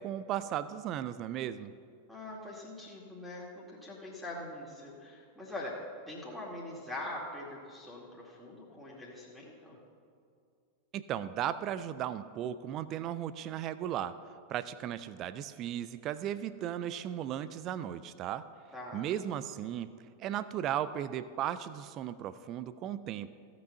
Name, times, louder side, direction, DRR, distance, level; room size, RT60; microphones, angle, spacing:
voice 1, 0.0-1.7 10.9-14.2 14.5-18.5 18.9-19.9 20.2-23.3, right 10 dB, 35° right, 14 dB, 0.4 m, -36 dB
voice 2, 2.1-5.8 6.1-9.8 18.7-19.1, left 1 dB, ahead, -4 dB, 2.2 m, -43 dB
15.5 x 6.2 x 7.0 m, 2.3 s
figure-of-eight pair, 90°, 0 cm